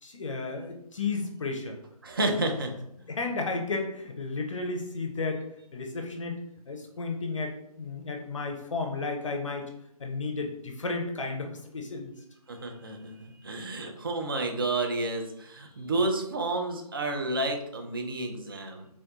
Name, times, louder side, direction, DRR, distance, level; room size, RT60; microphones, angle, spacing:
voice 1, 0.0-1.8 3.1-5.4 5.7-6.4 6.7-9.7 10.0-12.2, left 3 dB, 55° left, 3 dB, 0.5 m, -33 dB
voice 2, 2.0-2.7 12.5-18.9, right 2 dB, 35° right, 4 dB, 0.4 m, -30 dB
3.4 x 2.6 x 2.3 m, 0.76 s
figure-of-eight pair, 150°, 20 cm